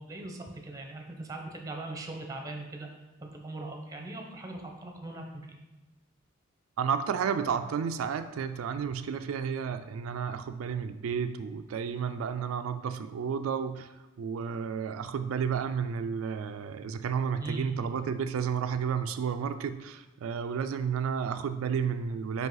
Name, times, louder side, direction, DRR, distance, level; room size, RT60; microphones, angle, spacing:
voice 1, 0.1-2.9 3.2-5.6 17.4-17.6, right 2 dB, 15° right, 2 dB, 0.8 m, -40 dB
voice 2, 6.8-13.9 14.2-22.5, right 6 dB, 90° right, 9 dB, 0.3 m, -32 dB
5.3 x 4.9 x 3.9 m, 1.1 s
head